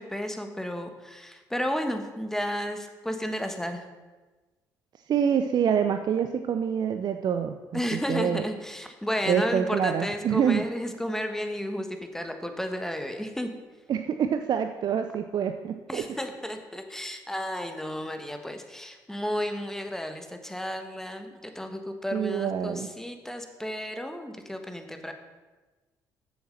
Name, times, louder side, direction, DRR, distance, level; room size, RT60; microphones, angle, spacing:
voice 1, 0.0-3.8 7.7-11.9 12.1-13.5 15.9-25.1, equal, 5° left, 6 dB, 1.4 m, -32 dB
voice 2, 5.1-8.4 9.3-10.6 13.9-16.0 22.1-22.9, right 8 dB, 60° right, 7 dB, 0.6 m, -26 dB
7.2 x 7.2 x 6.5 m, 1.3 s
supercardioid pair, 60°, 8 cm